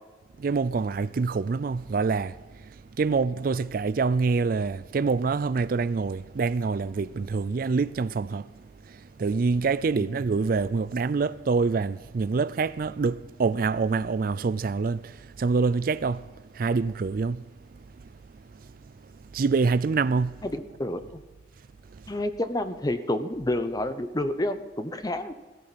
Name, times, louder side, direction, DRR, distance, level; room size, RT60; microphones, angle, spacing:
voice 1, 0.4-2.3 3.0-8.5 9.2-16.2 16.6-17.4 19.3-20.3, right 4 dB, 50° right, 0.4 m, -26 dB
voice 2, 20.4-21.2 22.1-25.3, left 1 dB, 20° left, 0.8 m, -29 dB
16.5 x 13.0 x 4.2 m
head